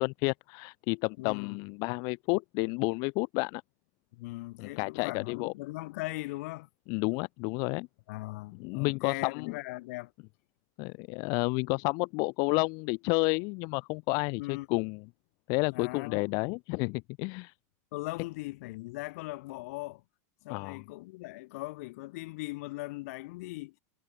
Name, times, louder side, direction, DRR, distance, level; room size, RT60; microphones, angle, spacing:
voice 1, 0.0-3.6 4.6-5.5 6.9-7.9 8.6-9.5 10.8-15.0 15.5-17.5 20.5-20.8, left 31 dB, 45° left, 0.5 m, -30 dB
voice 2, 1.2-1.6 4.1-6.7 8.1-10.1 14.4-14.7 15.7-16.4 17.9-20.0 20.4-23.7, left 21 dB, 60° left, 1.1 m, -39 dB
supercardioid pair, 150°, 9 cm